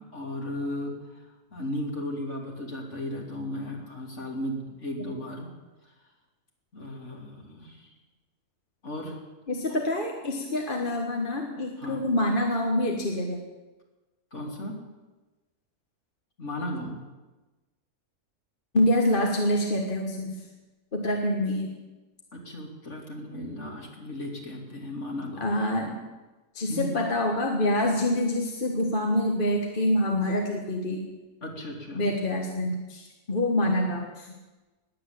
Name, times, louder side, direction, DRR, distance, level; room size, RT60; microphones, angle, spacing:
voice 1, 0.1-5.5 5.8-5.9 6.7-7.9 8.8-9.2 11.8-12.1 14.3-14.8 16.4-17.0 22.3-25.9 26.7-26.9 31.4-32.1, left 1 dB, 50° left, 0 dB, 3.3 m, -35 dB
voice 2, 9.5-13.4 18.7-20.4 20.9-21.7 25.4-26.0 26.5-31.1 32.0-34.3, left 1 dB, 35° left, 1 dB, 1.6 m, -26 dB
20.0 x 8.6 x 8.4 m, 1.2 s
omnidirectional pair, 1.6 m